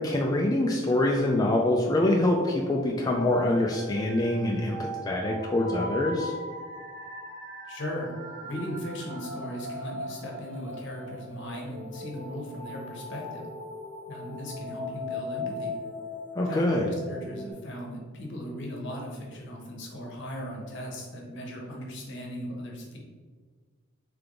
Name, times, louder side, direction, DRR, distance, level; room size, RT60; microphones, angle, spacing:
voice 1, 0.0-6.3 16.4-16.8, left 1 dB, 20° left, -1 dB, 0.3 m, -25 dB
sound 1, 2.3-17.5, left 1 dB, 70° right, 1.1 m, -40 dB
voice 2, 7.7-8.1 8.4-13.5 14.1-15.7 16.4-23.0, equal, 60° left, 0 dB, 0.9 m, -37 dB
3.4 x 3.4 x 3.7 m, 1.5 s
head